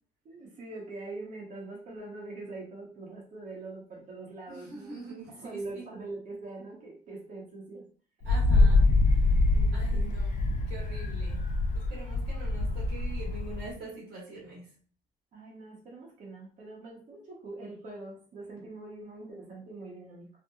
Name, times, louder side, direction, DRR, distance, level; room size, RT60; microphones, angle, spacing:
voice 1, 0.2-5.1 5.3-7.9 8.5-8.7 9.5-10.2 15.3-20.3, right 2 dB, 50° right, -3 dB, 0.8 m, -43 dB
voice 2, 4.5-5.8 8.2-9.3 9.7-10.4 10.7-11.5 11.7-14.7, right 2 dB, 90° right, -5 dB, 1.2 m, -44 dB
Wind, 8.2-13.7, left 2 dB, 50° left, 0.4 m, -25 dB
2.8 x 2.0 x 2.3 m, 0.42 s
cardioid pair, 110°, 17 cm